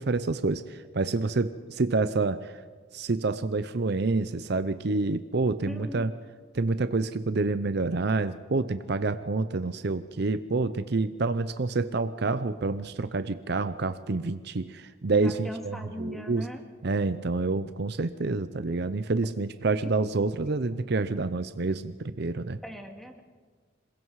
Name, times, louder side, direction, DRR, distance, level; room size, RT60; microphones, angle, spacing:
voice 1, 0.0-2.6 2.9-6.1 6.5-16.4 16.8-22.6, right 3 dB, 55° right, 12 dB, 0.6 m, -28 dB
voice 2, 5.7-6.1 15.1-16.6 22.6-23.2, equal, ahead, 3 dB, 2.0 m, -39 dB
27.0 x 21.5 x 4.8 m, 1.5 s
head